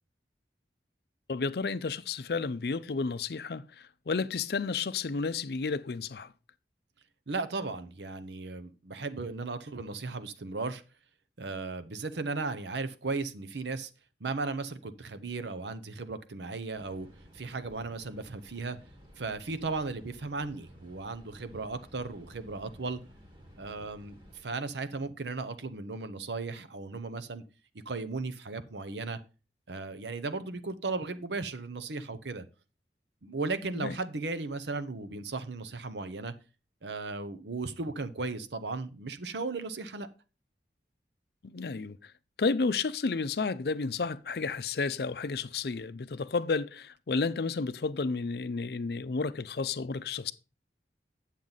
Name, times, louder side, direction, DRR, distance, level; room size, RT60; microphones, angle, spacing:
voice 1, 1.3-6.3 33.7-33.9 41.4-42.0 42.4-50.3, left 4 dB, 60° left, 0.5 m, -31 dB
voice 2, 7.3-10.8 11.4-13.9 14.2-17.1 17.3-18.8 19.2-23.0 23.6-27.4 27.9-29.2 29.7-32.4 33.2-36.3 36.8-40.1, right 3 dB, 80° right, 0.8 m, -36 dB
sound 1, 16.7-24.4, equal, 25° right, 1.4 m, -55 dB
8.9 x 7.3 x 4.0 m
head